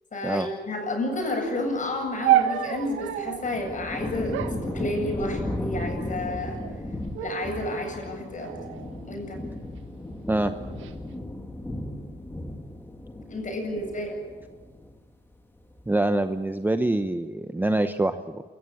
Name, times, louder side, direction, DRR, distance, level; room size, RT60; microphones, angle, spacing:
voice 1, 0.1-6.6 7.2-8.5 9.1-9.4 13.3-14.2, left 1 dB, 40° left, 3 dB, 7.9 m, -31 dB
sound 1, 2.2-3.5 4.3-5.5 6.3-6.8 7.2-7.7 8.4-9.7 10.5-10.9, right 12 dB, 90° right, 1.6 m, -29 dB
sound 2, 2.3-15.1 15.4-16.1, left 1 dB, 10° left, 1.9 m, -36 dB
voice 2, 15.9-18.4, right 2 dB, 10° right, 9 dB, 0.9 m, -25 dB
29.5 x 14.5 x 8.9 m, 1.4 s
cardioid pair, 90°, 20 cm